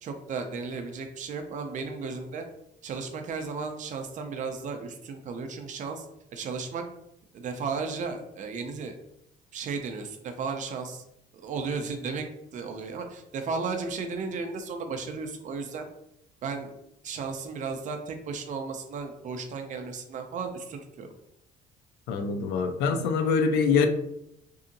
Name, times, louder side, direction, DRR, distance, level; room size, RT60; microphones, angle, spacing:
voice 1, 0.0-2.5 2.8-6.1 6.3-6.8 7.3-9.0 9.5-11.0 11.3-12.3 12.5-15.9 16.4-16.7 17.0-21.1, right 4 dB, 50° right, 6 dB, 0.5 m, -34 dB
voice 2, 22.1-23.9, left 5 dB, 85° left, 7 dB, 0.4 m, -24 dB
2.7 x 2.6 x 2.5 m, 0.80 s
cardioid pair, 110°, 17 cm